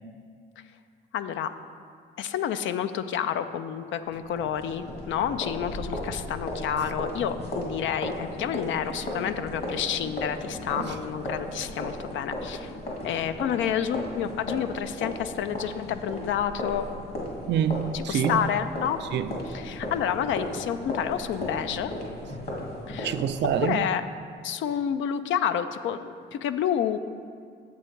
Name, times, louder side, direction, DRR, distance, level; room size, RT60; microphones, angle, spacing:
voice 1, 1.1-1.5 2.2-12.7 13.0-16.9 17.9-19.0 19.5-21.9 22.9-23.1 23.6-24.0 24.4-27.0, left 9 dB, 75° left, 0.5 m, -29 dB
sound 1, 4.1-23.7, left 1 dB, 55° left, 1.9 m, -36 dB
voice 2, 17.5-18.5 19.0-19.4 23.0-23.9, right 9 dB, 65° right, 0.4 m, -27 dB
7.7 x 7.1 x 4.5 m
cardioid pair, 90°, 20 cm